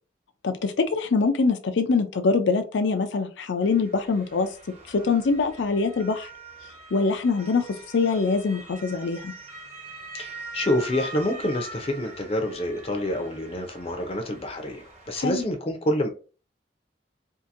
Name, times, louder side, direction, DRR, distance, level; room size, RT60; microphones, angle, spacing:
voice 1, 0.4-4.5 4.9-6.3 6.9-7.6 7.9-9.3 15.1-15.4, left 4 dB, 85° left, 8 dB, 0.5 m, -24 dB
Motor vehicle (road) / Siren, 3.6-15.4, right 2 dB, 35° right, 1.1 m, -43 dB
voice 2, 10.1-16.1, left 1 dB, 35° left, 5 dB, 0.6 m, -27 dB
2.8 x 2.5 x 2.5 m, 0.35 s
head